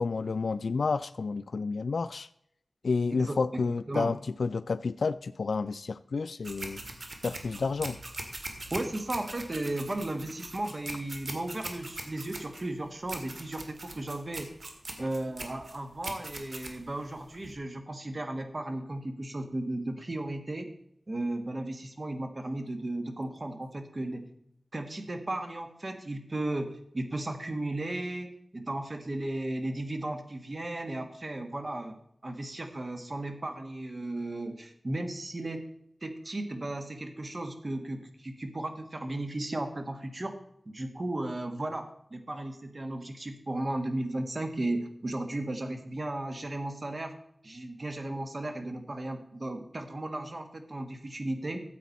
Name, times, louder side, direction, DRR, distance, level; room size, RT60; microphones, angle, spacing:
voice 1, 0.0-2.3 2.8-6.8 7.2-8.0, left 4 dB, 85° left, 14 dB, 0.3 m, -30 dB
voice 2, 3.1-4.2 8.7-14.5 15.0-20.7 21.1-24.3 24.7-31.9 32.2-35.6 36.0-40.4 40.6-47.1 47.4-51.6, right 1 dB, 45° right, 6 dB, 1.6 m, -35 dB
sound 1, 6.4-17.5, right 2 dB, 60° right, 2.0 m, -42 dB
13.5 x 8.2 x 4.1 m, 0.73 s
wide cardioid pair, 70°, 0 cm